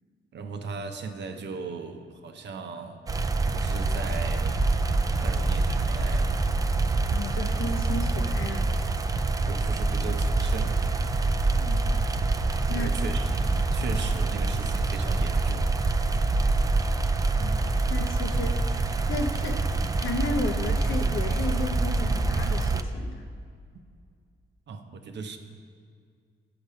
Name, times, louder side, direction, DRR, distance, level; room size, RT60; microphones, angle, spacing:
voice 1, 0.3-3.0 3.5-4.6 5.2-6.4 9.4-10.9 12.7-15.7 24.7-25.4, right 4 dB, 60° right, 6 dB, 0.7 m, -38 dB
sound 1, 3.1-22.8, right 3 dB, 20° right, 0.3 m, -25 dB
voice 2, 7.1-8.8 11.6-11.9 12.7-12.9 17.4-17.6 17.9-19.6 20.0-23.2, left 2 dB, 80° left, 4 dB, 0.8 m, -34 dB
6.7 x 6.0 x 5.5 m, 2.2 s
cardioid pair, 100°, 21 cm